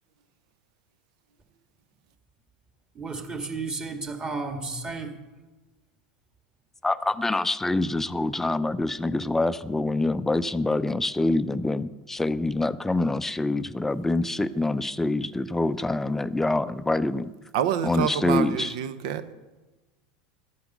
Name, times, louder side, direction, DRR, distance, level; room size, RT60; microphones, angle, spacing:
voice 1, 3.0-5.1, right 3 dB, 25° right, 4 dB, 2.0 m, -33 dB
voice 2, 6.8-17.3 17.8-18.7, left 2 dB, 10° left, 15 dB, 0.5 m, -25 dB
voice 3, 17.5-19.3, right 9 dB, 70° right, 12 dB, 0.9 m, -27 dB
12.5 x 8.7 x 6.1 m, 1.2 s
hypercardioid pair, 95°, 4 cm